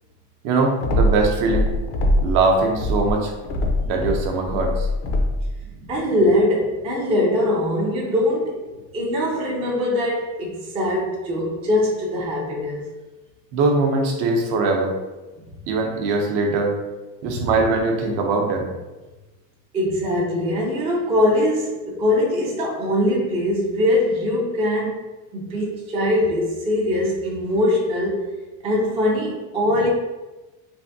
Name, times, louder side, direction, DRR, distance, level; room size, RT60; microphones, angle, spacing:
voice 1, 0.4-1.7 2.2-3.3 3.8-4.9 13.5-15.0 15.7-16.8 17.2-18.7, right 3 dB, 60° right, 2 dB, 0.7 m, -21 dB
sound 1, 0.8-2.4 2.7-5.5, left 1 dB, 75° left, 0.7 m, -22 dB
voice 2, 5.8-8.6 8.9-12.9 17.2-17.4 19.7-25.0 25.3-28.3 28.6-29.9, left 1 dB, 15° right, -3 dB, 0.3 m, -22 dB
3.4 x 2.5 x 2.6 m, 1.1 s
cardioid pair, 145°, 46 cm